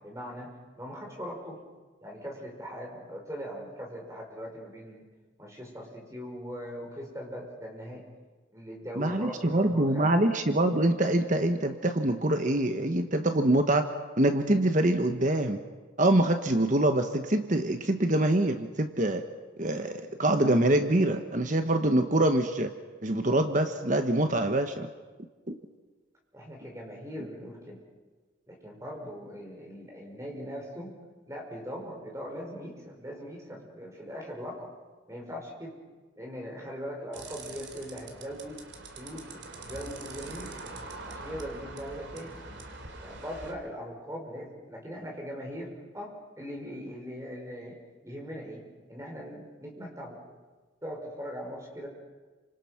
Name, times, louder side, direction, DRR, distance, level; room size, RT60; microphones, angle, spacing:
voice 1, 0.0-1.6 2.0-5.1 5.4-8.0 8.5-10.2 26.3-27.8 28.5-30.9 31.3-34.7 35.1-35.8 36.2-38.6 39.0-40.6 41.0-42.4 43.0-48.6 48.9-50.4 50.8-51.9, equal, 15° right, -1 dB, 5.5 m, -40 dB
voice 2, 9.0-13.9 14.2-15.6 16.0-19.2 19.6-22.7 23.0-24.9 25.5-25.6, right 1 dB, 40° right, 7 dB, 1.2 m, -25 dB
sound 1, 37.1-43.5, right 3 dB, 70° right, 2.9 m, -43 dB
28.5 x 26.0 x 5.9 m, 1.3 s
head